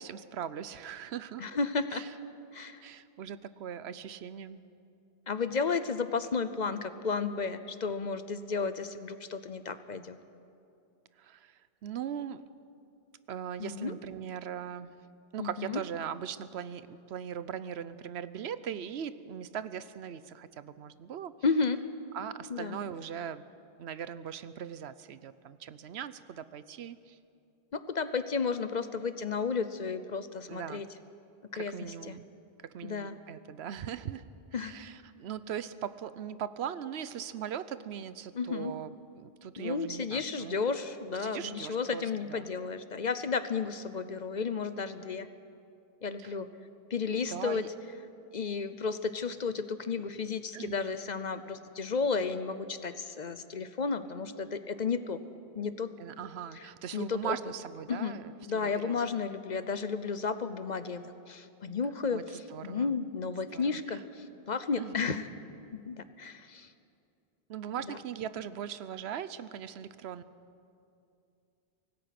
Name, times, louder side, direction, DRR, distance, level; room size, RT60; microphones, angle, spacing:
voice 1, 0.0-1.5 1.9-2.1 2.8-4.6 11.2-12.4 13.3-14.9 15.3-21.3 22.1-23.5 23.8-27.2 30.5-30.8 31.5-32.3 32.6-34.2 34.5-40.6 41.2-42.0 42.3-42.5 46.2-46.4 47.1-47.7 50.5-50.8 56.0-58.9 62.1-62.9 63.5-64.0 64.7-65.2 67.5-70.2, right 8 dB, 85° right, 15 dB, 1.0 m, -40 dB
voice 2, 1.4-2.0 2.5-2.8 5.3-10.2 13.6-13.9 15.4-15.8 21.4-21.8 22.5-22.8 27.7-30.9 31.5-32.2 32.8-33.1 34.5-34.7 38.3-38.7 39.6-45.3 46.0-46.5 46.9-47.7 48.3-55.2 55.6-55.9 56.5-56.7 56.9-57.4 57.9-65.3 65.7-66.7 67.9-68.0, left 5 dB, 50° left, 12 dB, 0.8 m, -33 dB
24.5 x 18.5 x 5.9 m, 2.6 s
omnidirectional pair, 1.1 m